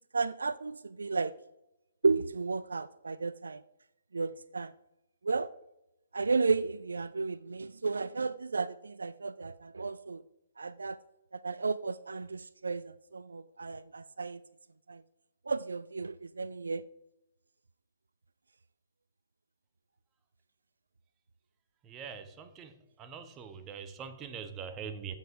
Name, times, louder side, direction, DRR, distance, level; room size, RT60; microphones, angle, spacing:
voice 1, 0.1-1.3 2.0-3.6 4.1-4.7 5.2-5.5 6.1-10.2 10.6-11.0 11.3-14.4 14.9-15.0 15.5-16.8, right 4 dB, 70° right, 18 dB, 0.3 m, -33 dB
voice 2, 21.9-22.7 23.0-25.2, right 6 dB, 20° right, 10 dB, 1.1 m, -43 dB
13.5 x 8.1 x 4.8 m, 0.93 s
figure-of-eight pair, 125°, 0 cm